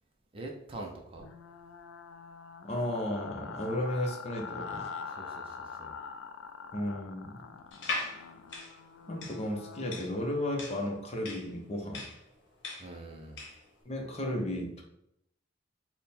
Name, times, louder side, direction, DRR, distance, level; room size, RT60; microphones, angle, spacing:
voice 1, 0.3-1.3 5.2-5.9 12.8-13.4, right 2 dB, 30° right, 1 dB, 0.5 m, -44 dB
sound 1, 1.2-10.1, left 5 dB, 80° left, 0.3 m, -44 dB
voice 2, 2.6-4.9 6.7-7.4 9.1-12.0 13.9-14.8, left 1 dB, 35° left, 1 dB, 0.6 m, -34 dB
sound 2, 7.7-13.7, left 3 dB, 65° left, 0.9 m, -40 dB
3.5 x 2.1 x 4.2 m, 0.80 s
head